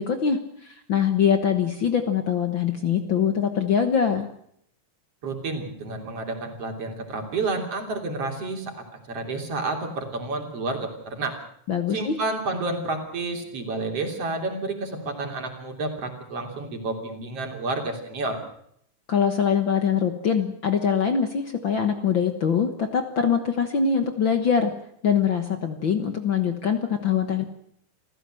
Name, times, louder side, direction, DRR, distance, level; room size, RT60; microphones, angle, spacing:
voice 1, 0.0-4.3 11.7-12.2 19.1-24.7 25.0-27.4, left 7 dB, 50° left, 7 dB, 1.8 m, -23 dB
voice 2, 5.2-8.7 9.1-11.4 11.9-18.4, right 3 dB, 55° right, 3 dB, 4.2 m, -30 dB
28.0 x 15.5 x 7.7 m, 0.70 s
omnidirectional pair, 3.4 m